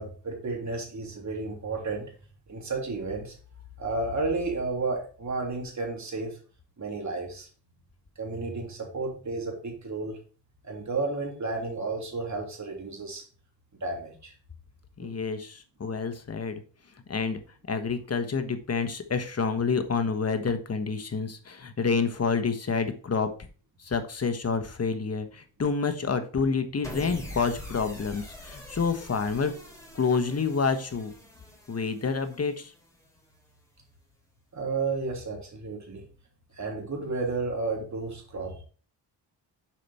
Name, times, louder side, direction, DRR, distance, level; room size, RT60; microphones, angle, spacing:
voice 1, 0.0-2.1 2.5-3.3 3.8-6.4 6.8-7.5 8.2-10.2 10.6-13.2 13.8-14.3 15.0-15.1 34.5-36.0 36.5-38.6, right 3 dB, 40° right, 0 dB, 3.2 m, -32 dB
voice 2, 15.0-16.6 17.1-17.4 17.7-23.3 23.8-29.5 29.9-31.1 31.7-32.7, left 5 dB, 35° left, 8 dB, 1.2 m, -28 dB
sound 1, 26.8-33.2, left 1 dB, 5° left, 3.2 m, -44 dB
7.8 x 5.1 x 4.2 m, 0.40 s
cardioid pair, 80°, 43 cm